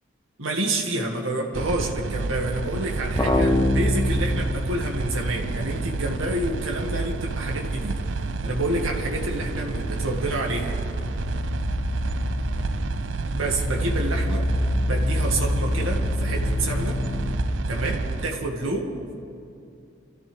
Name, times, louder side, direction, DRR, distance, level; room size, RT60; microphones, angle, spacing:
voice 1, 0.4-8.0 8.4-10.8 13.3-14.5 14.8-17.0 17.7-18.9, right 1 dB, 80° right, 0 dB, 2.2 m, -28 dB
sound 1, 1.5-18.3, right 3 dB, 65° right, 0.5 m, -30 dB
sound 2, 3.1-7.5 7.8-17.4, left 1 dB, 15° left, 0.9 m, -28 dB
27.0 x 14.5 x 3.6 m, 2.6 s
head